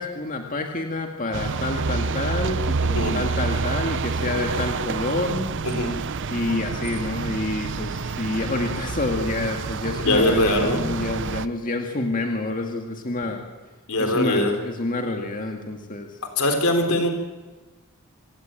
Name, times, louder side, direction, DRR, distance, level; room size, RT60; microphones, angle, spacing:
voice 1, 0.0-5.5 6.3-13.5 14.0-16.2, left 2 dB, 35° left, 3 dB, 2.0 m, -28 dB
sound 1, 1.3-11.5, right 4 dB, 55° right, 0.7 m, -28 dB
voice 2, 10.0-10.9 13.9-14.5 16.4-17.1, left 1 dB, 75° left, 5 dB, 3.8 m, -21 dB
27.0 x 18.5 x 9.0 m, 1.2 s
head